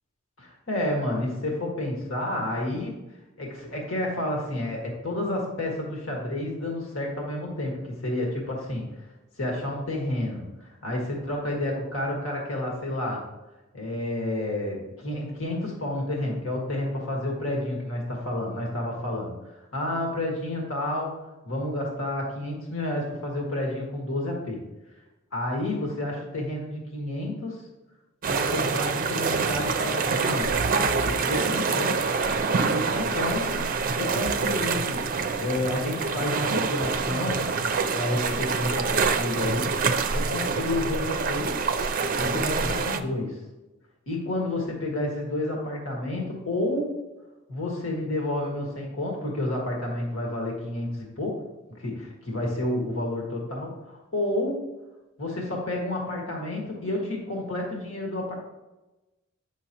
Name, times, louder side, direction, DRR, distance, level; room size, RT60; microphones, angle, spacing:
voice 1, 0.4-3.0 3.4-8.9 9.4-13.2 13.7-19.3 19.7-21.2 21.4-24.6 25.3-27.6 28.3-30.5 31.0-32.1 32.7-35.1 35.4-37.5 37.9-39.7 40.1-41.5 42.2-43.4 44.1-47.0 47.5-51.4 51.8-51.9 52.3-54.7 55.2-58.3, left 1 dB, 70° left, -1 dB, 1.8 m, -30 dB
sound 1, 28.2-43.0, right 5 dB, 40° right, 0.5 m, -26 dB
8.7 x 6.2 x 2.9 m, 1.0 s
head